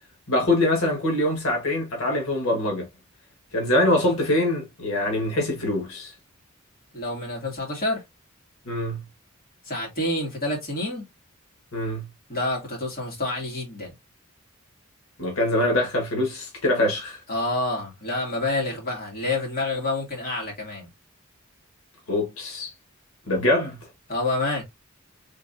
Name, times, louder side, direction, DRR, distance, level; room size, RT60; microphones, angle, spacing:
voice 1, 0.3-2.9 3.5-6.1 8.6-9.0 11.7-12.1 15.2-17.2 22.1-22.7 23.3-23.8, left 1 dB, 90° left, 1.5 m, -24 dB
voice 2, 6.9-8.0 9.7-11.0 12.3-13.9 17.3-20.9 24.1-24.6, left 2 dB, 45° left, 2.4 m, -28 dB
3.9 x 3.4 x 2.6 m
head